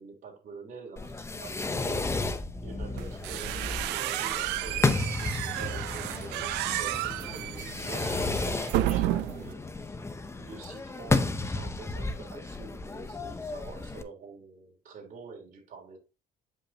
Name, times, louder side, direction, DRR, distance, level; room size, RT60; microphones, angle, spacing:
voice 1, 0.0-2.1 2.6-6.4 6.8-10.0 10.4-16.0, right 5 dB, 50° right, 3.2 m, -46 dB
Fireworks, 1.0-14.0, left 3 dB, 15° left, 0.8 m, -33 dB
sound 1, 3.0-9.5, right 14 dB, 85° right, 0.5 m, -32 dB
8.4 x 5.4 x 2.9 m
cardioid pair, 110°, 17 cm